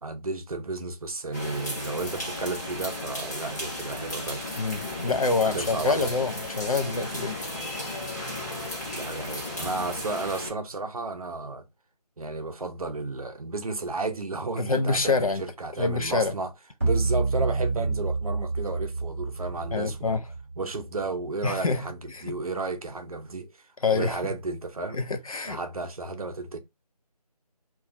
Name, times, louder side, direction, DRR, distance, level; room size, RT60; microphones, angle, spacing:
voice 1, 0.0-4.5 5.4-6.1 8.9-11.6 12.2-16.5 16.8-20.2 20.6-22.0 22.2-23.5 23.9-25.0 25.5-26.6, right 3 dB, 60° right, 0.6 m, -33 dB
sound 1, 1.3-10.5, left 1 dB, 25° left, 0.9 m, -35 dB
voice 2, 4.6-7.4 14.6-15.4 15.8-16.3 19.7-20.3 21.4-22.4 23.8-24.2 24.9-25.6, left 4 dB, 55° left, 0.5 m, -26 dB
sound 2, 16.8-21.3, right 3 dB, 20° right, 0.7 m, -28 dB
2.5 x 2.3 x 2.8 m
figure-of-eight pair, 165°, 21 cm